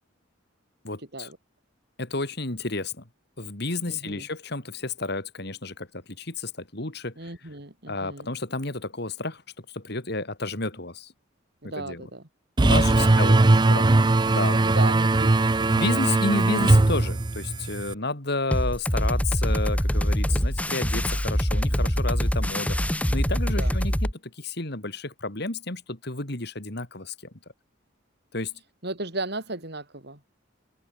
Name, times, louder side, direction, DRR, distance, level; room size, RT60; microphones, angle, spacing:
voice 1, 0.8-1.3 2.0-3.0 3.4-7.3 7.9-11.1 11.6-12.0 12.6-13.4 13.7-13.9 14.3-14.7 15.7-27.3 28.3-28.5, left 2 dB, 60° left, 3.3 m, -31 dB
voice 2, 3.8-4.3 7.2-8.3 11.6-12.3 12.9-13.8 14.6-15.7 20.1-20.5 23.5-23.8 28.8-30.3, right 2 dB, 60° right, 4.8 m, -36 dB
sound 1, 12.6-17.9, right 2 dB, 25° right, 0.5 m, -20 dB
sound 2, 18.5-24.1, equal, 5° left, 1.9 m, -24 dB
open air
head